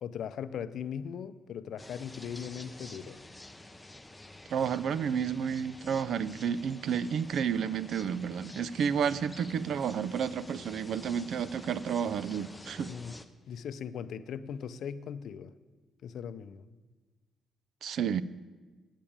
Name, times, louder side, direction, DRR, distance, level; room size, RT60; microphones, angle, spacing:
voice 1, 0.0-3.2 12.9-13.2 13.5-15.5 16.0-16.6, left 8 dB, 70° left, 14 dB, 0.5 m, -39 dB
sound 1, 1.8-13.3, left 2 dB, 10° left, 0.7 m, -49 dB
voice 2, 4.5-12.9 17.8-18.2, right 7 dB, 65° right, 18 dB, 0.4 m, -31 dB
9.1 x 8.5 x 8.7 m, 1.3 s
cardioid pair, 90°, 0 cm